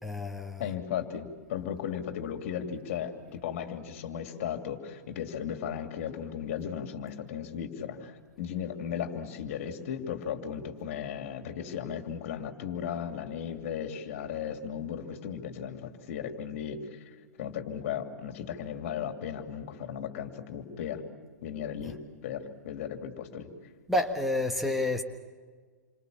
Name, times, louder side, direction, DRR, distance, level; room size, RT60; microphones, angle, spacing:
voice 1, 0.0-0.8 23.9-25.0, left 2 dB, ahead, 1.4 m, -29 dB
voice 2, 0.6-21.0 21.4-23.5, left 8 dB, 50° left, 2.9 m, -36 dB
28.5 x 25.0 x 7.3 m
figure-of-eight pair, 110°, 9 cm